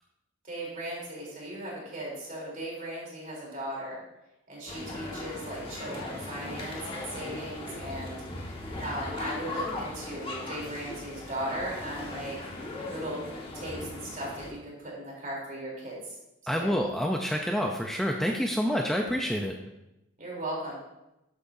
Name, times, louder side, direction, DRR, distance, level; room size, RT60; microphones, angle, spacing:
voice 1, 0.4-4.0 4.5-8.5 8.8-12.4 12.9-13.2 13.5-16.2 16.5-16.7 20.2-20.8, right 1 dB, 40° right, -4 dB, 3.4 m, -37 dB
sound 1, 4.7-14.5, left 2 dB, 25° left, 1.5 m, -38 dB
voice 2, 16.5-19.5, equal, ahead, 1 dB, 0.5 m, -28 dB
12.5 x 8.5 x 2.7 m, 0.92 s
head